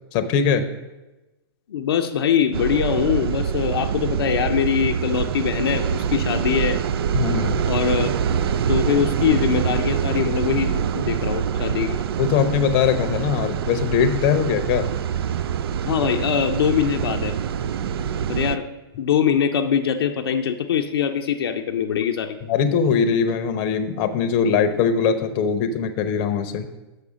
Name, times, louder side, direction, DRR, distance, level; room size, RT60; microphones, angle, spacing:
voice 1, 0.1-0.7 7.1-7.6 12.2-14.9 22.5-26.7, left 7 dB, 40° left, 9 dB, 0.7 m, -21 dB
voice 2, 1.7-6.8 7.7-12.0 15.8-17.3 18.3-18.7 19.0-22.4, left 8 dB, 70° left, 5 dB, 0.5 m, -23 dB
sound 1, 2.5-18.6, right 8 dB, 70° right, 0.4 m, -25 dB
6.5 x 5.0 x 6.1 m, 1.1 s
hypercardioid pair, 125°, 13 cm